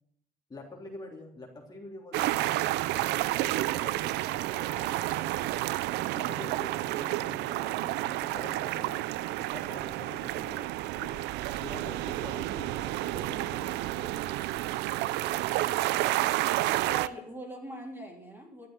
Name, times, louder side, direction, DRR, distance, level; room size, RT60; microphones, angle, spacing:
voice 1, 0.5-2.5 6.1-9.0 9.4-10.7 11.0-14.3, left 2 dB, 25° left, -1 dB, 3.2 m, -45 dB
sound 1, 2.1-17.1, right 16 dB, 85° right, 0.5 m, -30 dB
voice 2, 16.8-18.7, right 1 dB, 15° right, 0 dB, 3.5 m, -43 dB
12.5 x 7.8 x 9.2 m, 0.75 s
cardioid pair, 110°, 17 cm